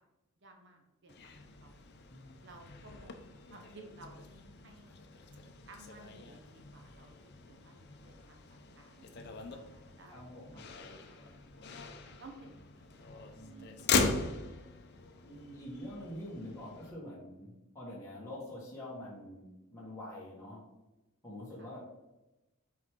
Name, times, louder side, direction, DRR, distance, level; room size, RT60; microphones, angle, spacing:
voice 1, 0.4-1.8 2.4-4.9 5.7-9.0 9.4-11.7 12.0-12.9 13.2-13.7 21.6-21.8, right 2 dB, 55° right, 2 dB, 1.0 m, -56 dB
Motor vehicle (road), 1.1-16.9, left 4 dB, 50° left, 0.6 m, -40 dB
voice 2, 2.1-2.4 10.1-10.6 13.3-14.2 15.2-20.6 21.2-21.8, left 1 dB, 15° left, -7 dB, 1.6 m, -46 dB
6.0 x 4.8 x 3.7 m, 1.0 s
head